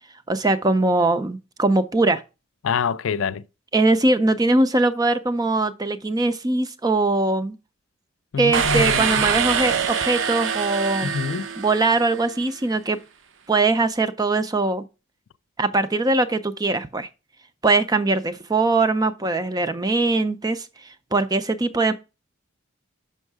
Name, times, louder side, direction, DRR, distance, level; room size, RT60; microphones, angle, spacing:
voice 1, 0.3-2.2 3.7-7.6 8.4-11.1 11.6-13.0 13.5-14.9 15.6-17.1 17.6-20.7 21.1-21.9, right 2 dB, 20° right, 0.5 m, -21 dB
voice 2, 2.6-3.4 8.3-9.2 11.0-11.5, left 6 dB, 70° left, 0.4 m, -26 dB
sound 1, 8.5-12.3, right 6 dB, 60° right, 0.7 m, -24 dB
6.2 x 5.5 x 4.8 m
head